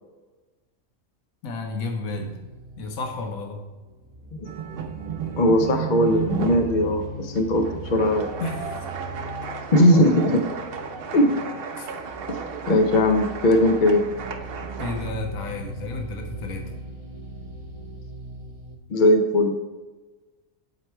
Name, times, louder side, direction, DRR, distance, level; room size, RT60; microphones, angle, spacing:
voice 1, 1.4-2.4 2.8-3.6 8.4-8.9 11.7-11.9 14.8-16.7, left 3 dB, 80° left, 3 dB, 1.3 m, -32 dB
sound 1, 2.1-18.8, right 2 dB, 25° right, 0.9 m, -40 dB
sound 2, 4.4-15.1, right 6 dB, 55° right, 0.7 m, -33 dB
voice 2, 5.4-7.6 7.9-8.2 9.7-10.4 11.1-11.4 12.3-12.4 12.7-14.0 18.9-19.5, left 1 dB, 50° left, 5 dB, 0.5 m, -19 dB
7.7 x 4.6 x 4.4 m, 1.2 s
omnidirectional pair, 1.5 m